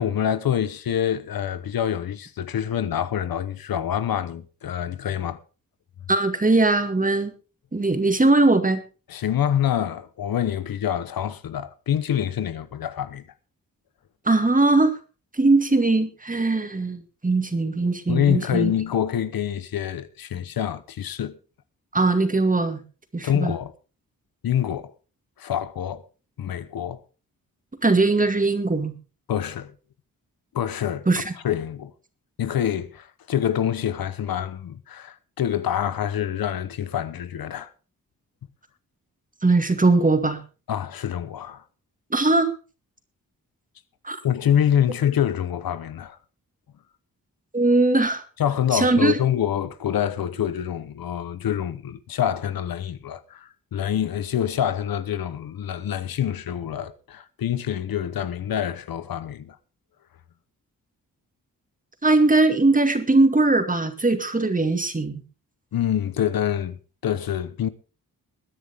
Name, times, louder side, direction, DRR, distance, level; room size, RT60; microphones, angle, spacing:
voice 1, 0.0-5.4 9.1-13.2 18.1-21.4 23.2-23.7 24.4-24.9 25.4-26.0 26.4-27.0 29.3-29.7 30.5-31.1 31.4-31.9 32.4-37.7 40.7-41.6 44.2-46.2 48.4-59.6 65.7-67.7, left 9 dB, 85° left, 1.0 m, -26 dB
voice 2, 6.1-7.3 7.7-8.8 14.3-14.9 15.3-18.7 21.9-22.8 23.1-23.6 27.8-28.9 31.1-31.3 39.4-40.4 42.1-42.5 44.0-44.2 47.5-48.2 48.7-49.2 62.0-65.2, right 2 dB, 25° right, 2.1 m, -20 dB
21.5 x 10.0 x 3.6 m
cardioid pair, 90°, 34 cm